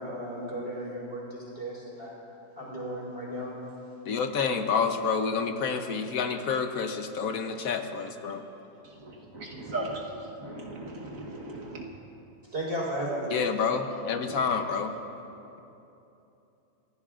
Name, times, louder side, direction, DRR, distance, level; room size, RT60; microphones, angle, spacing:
voice 1, 0.0-2.2 2.6-3.6 12.5-13.5, right 1 dB, 50° right, -5 dB, 4.6 m, -34 dB
voice 2, 4.1-8.4 13.3-14.9, left 5 dB, 80° left, 6 dB, 1.3 m, -28 dB
voice 3, 8.8-10.0 10.4-11.8 14.2-14.4, right 2 dB, 70° right, -1 dB, 1.7 m, -37 dB
29.0 x 15.5 x 2.5 m, 2.9 s
omnidirectional pair, 1.5 m